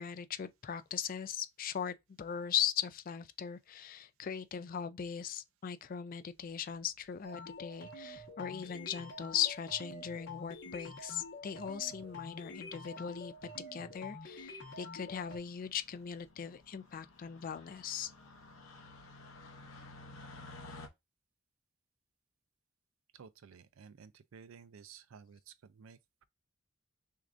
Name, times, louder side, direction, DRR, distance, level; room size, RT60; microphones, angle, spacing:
voice 1, 0.0-13.3 13.7-18.1, left 9 dB, 45° left, 0.4 m, -39 dB
sound 1, 6.9-7.2 8.2-8.6 9.4-9.5 9.7-9.8 10.1-10.2 10.5-10.8 11.2-11.5 11.8-20.9, left 2 dB, 85° left, 0.8 m, -55 dB
sound 2, 7.2-15.4, left 2 dB, 60° left, 1.2 m, -47 dB
voice 2, 23.1-26.2, right 6 dB, 85° right, 0.4 m, -55 dB
6.4 x 2.5 x 2.5 m
head